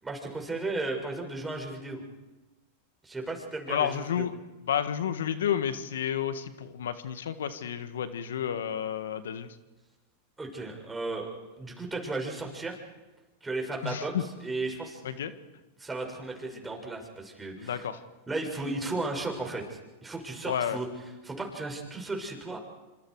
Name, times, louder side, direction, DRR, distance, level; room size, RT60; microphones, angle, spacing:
voice 1, 0.0-2.0 3.0-4.3 10.4-11.3 11.6-12.8 13.4-14.1 14.4-15.0 15.8-17.9 18.3-20.9 21.2-22.6, right 2 dB, 10° right, 1 dB, 6.6 m, -35 dB
voice 2, 3.7-4.3 4.7-9.6 13.8-14.2 15.0-15.3 17.6-18.0 20.4-20.8, left 9 dB, 80° left, 11 dB, 1.7 m, -31 dB
27.0 x 26.0 x 4.9 m, 1.1 s
hypercardioid pair, 110°, 0 cm